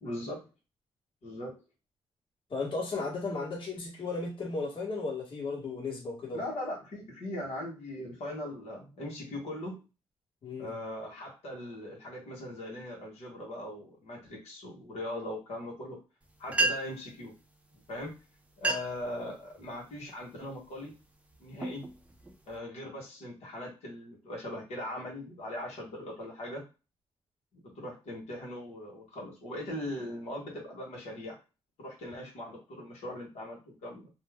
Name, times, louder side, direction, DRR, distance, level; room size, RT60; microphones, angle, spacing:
voice 1, 0.0-0.4 1.2-1.6 6.3-9.8 10.6-16.0 16.4-17.3 17.9-18.1 18.6-20.9 21.4-21.8 22.5-26.6 27.5-31.4 31.8-34.1, left 1 dB, 80° left, -2 dB, 1.3 m, -40 dB
voice 2, 2.5-6.4 10.4-10.7, left 3 dB, 50° left, -3 dB, 1.3 m, -35 dB
sound 1, 16.2-16.3 16.5-17.1 18.0-18.1 18.5-19.1 19.6-19.9 20.5-20.8 21.3-22.6, right 2 dB, 10° right, 0.6 m, -32 dB
2.6 x 2.0 x 3.5 m, 0.29 s
cardioid pair, 75°, 11 cm